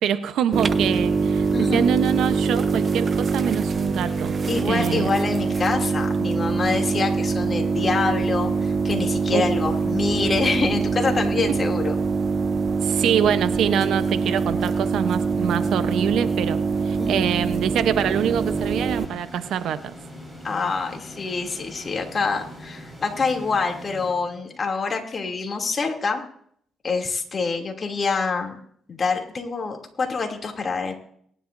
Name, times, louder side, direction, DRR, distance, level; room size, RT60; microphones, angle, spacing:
voice 1, 0.0-1.5 1.7-4.3 4.6-5.1 9.3-9.5 12.8-16.6 16.8-19.8, right 9 dB, 75° right, 11 dB, 0.9 m, -25 dB
sound 1, 0.5-19.1, right 4 dB, 40° right, 0.8 m, -24 dB
voice 2, 1.5-1.9 4.0-4.1 4.5-11.9 17.0-17.4 20.4-26.2 26.8-28.6 28.9-30.9, left 4 dB, 40° left, 2 dB, 2.8 m, -26 dB
sound 2, 18.1-24.8, equal, 10° right, 5.3 m, -42 dB
22.5 x 11.0 x 2.7 m, 0.63 s
cardioid pair, 90°, 0 cm